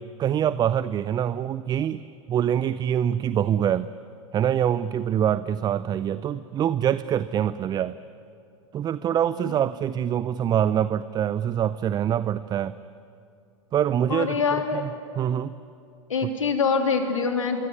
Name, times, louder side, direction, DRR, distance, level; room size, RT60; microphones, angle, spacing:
voice 1, 0.0-2.0 2.3-3.9 4.3-8.0 8.7-12.8 13.7-14.4 15.2-15.5, right 9 dB, 25° right, 16 dB, 0.6 m, -24 dB
voice 2, 14.1-14.9 16.1-17.6, left 5 dB, 80° left, 3 dB, 3.3 m, -24 dB
25.0 x 23.0 x 9.7 m, 2.5 s
figure-of-eight pair, 95°, 16 cm